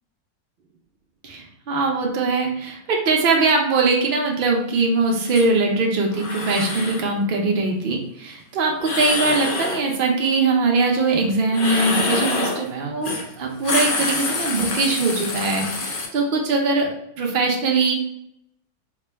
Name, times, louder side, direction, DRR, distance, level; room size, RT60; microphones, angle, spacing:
voice 1, 1.2-16.9 17.2-17.9, right 3 dB, 90° right, 1 dB, 0.4 m, -21 dB
sound 1, 5.2-5.5 6.1-7.0 8.8-9.8 11.5-12.6 13.0-13.3 13.5-16.1, left 3 dB, 70° left, 0.5 m, -26 dB
3.3 x 2.2 x 3.2 m, 0.76 s
omnidirectional pair, 1.6 m